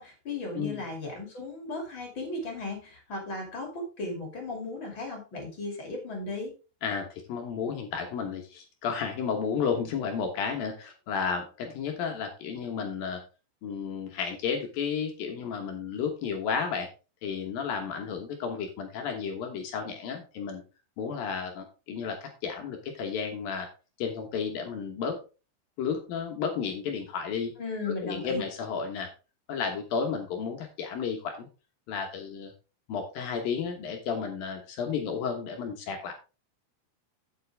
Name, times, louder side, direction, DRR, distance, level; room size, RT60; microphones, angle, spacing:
voice 1, 0.0-6.5 27.6-28.4, left 2 dB, 35° left, 2 dB, 2.1 m, -36 dB
voice 2, 6.8-13.2 13.6-16.9 17.2-20.6 21.0-23.7 24.0-25.2 25.8-27.5 27.9-29.1 29.5-31.5 31.9-32.5 32.9-36.1, left 6 dB, 70° left, 3 dB, 2.2 m, -32 dB
9.1 x 7.9 x 3.4 m, 0.33 s
omnidirectional pair, 5.8 m